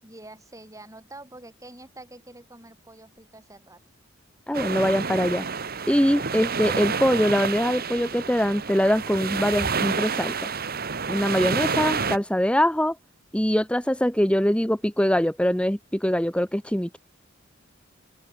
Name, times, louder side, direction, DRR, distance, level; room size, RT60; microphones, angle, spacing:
voice 1, 0.0-3.8, right 2 dB, 15° right, 4.4 m, -46 dB
voice 2, 4.5-5.4 5.9-10.5 11.1-13.0 13.3-17.0, equal, 5° left, 1.4 m, -23 dB
sound 1, 4.5-12.2, right 5 dB, 45° right, 1.6 m, -29 dB
open air
head